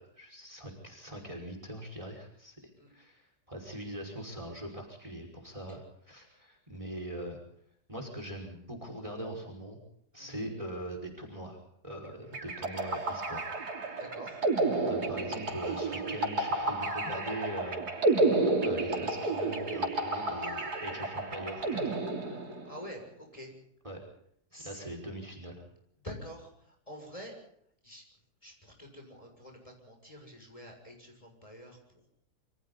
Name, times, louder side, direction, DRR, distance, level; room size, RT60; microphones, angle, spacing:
voice 1, 0.0-2.6 2.9-7.4 7.9-9.8 10.1-13.5 14.9-17.8 18.1-18.2 18.6-22.0 23.8-24.0 24.5-25.6, right 1 dB, 20° right, 4 dB, 5.6 m, -42 dB
sound 1, 12.3-22.8, right 2 dB, 75° right, 3.8 m, -31 dB
voice 2, 13.9-14.4 22.6-23.5 24.5-24.8 26.0-27.4 27.8-28.0 28.4-31.8, equal, 20° left, 2 dB, 7.1 m, -47 dB
28.5 x 26.5 x 4.1 m, 0.70 s
omnidirectional pair, 1.7 m